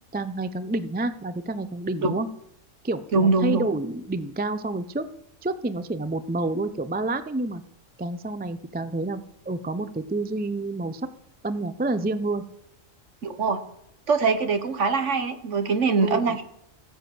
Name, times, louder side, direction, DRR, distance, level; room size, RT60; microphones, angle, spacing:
voice 1, 0.1-2.3 2.8-5.0 5.4-7.6 8.0-9.2 9.5-11.0 11.4-12.4 16.0-16.4, right 2 dB, 10° right, 12 dB, 0.4 m, -28 dB
voice 2, 3.1-3.7 13.2-13.6 14.1-16.4, right 4 dB, 65° right, 9 dB, 1.6 m, -23 dB
15.0 x 10.5 x 7.8 m, 0.77 s
omnidirectional pair, 1.4 m